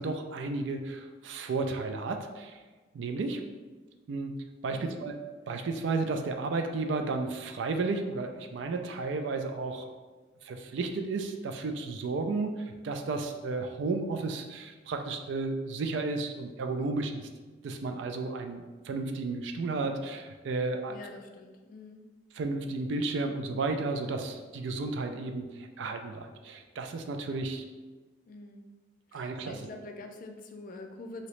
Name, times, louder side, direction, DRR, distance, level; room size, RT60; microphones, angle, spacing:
voice 1, 0.0-2.6 2.9-3.4 4.1-5.2 5.5-9.9 10.4-17.3 17.6-20.9 22.3-27.6 29.1-29.6, right 3 dB, 65° right, 6 dB, 0.3 m, -33 dB
voice 2, 4.7-5.1 20.9-22.0 28.3-28.7 29.1-31.3, left 2 dB, 45° left, 4 dB, 0.3 m, -45 dB
3.0 x 2.8 x 3.1 m, 1.3 s
head